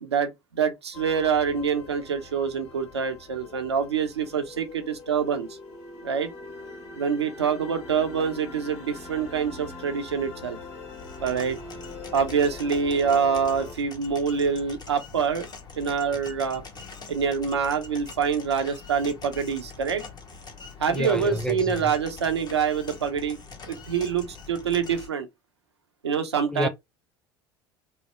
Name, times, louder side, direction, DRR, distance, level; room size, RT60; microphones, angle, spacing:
voice 1, 0.0-5.5 6.0-6.3 7.0-10.6 11.2-11.6 12.1-15.5 15.8-16.6 17.1-20.0 20.8-23.4 23.7-25.3 26.0-26.7, right 6 dB, 90° right, 0.6 m, -26 dB
sound 1, 0.9-13.7, left 3 dB, 70° left, 1.5 m, -42 dB
sound 2, 10.9-25.1, left 4 dB, 30° left, 1.0 m, -44 dB
voice 2, 20.9-21.9 26.5-26.7, left 1 dB, 5° left, 0.4 m, -29 dB
3.1 x 2.0 x 3.0 m
hypercardioid pair, 70°, 14 cm